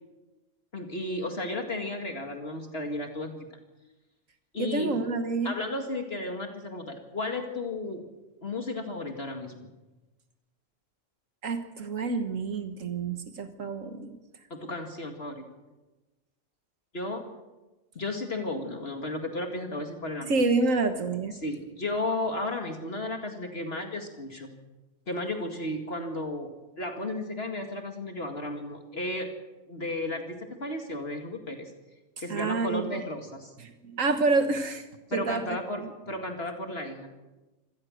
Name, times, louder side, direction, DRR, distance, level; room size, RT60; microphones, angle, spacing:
voice 1, 0.7-3.4 4.5-5.0 5.4-8.1 8.4-9.7 14.5-15.5 16.9-17.3 18.0-20.3 21.4-24.6 25.1-29.3 29.7-31.7 32.2-33.5 35.1-37.1, left 2 dB, 50° left, 4 dB, 2.3 m, -34 dB
voice 2, 4.6-5.5 11.4-14.1 20.3-21.3 32.3-32.9 33.6-34.8 35.1-35.4 35.8-35.9, right 3 dB, 80° right, 7 dB, 1.7 m, -28 dB
25.0 x 18.0 x 6.5 m, 1.1 s
omnidirectional pair, 1.3 m